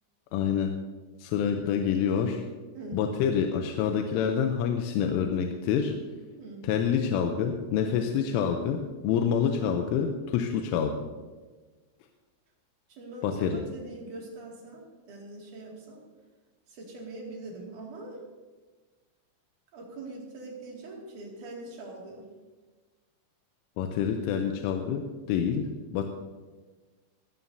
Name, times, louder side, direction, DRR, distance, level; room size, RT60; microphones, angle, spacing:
voice 1, 0.3-0.7 1.2-2.5 2.9-5.9 6.6-11.0 13.2-13.6 23.8-26.1, left 7 dB, 80° left, 4 dB, 3.1 m, -27 dB
voice 2, 6.3-6.7 12.9-16.0 16.7-18.2 19.7-22.3, right 2 dB, 45° right, -2 dB, 3.2 m, -42 dB
19.0 x 13.0 x 2.8 m, 1.3 s
omnidirectional pair, 5.9 m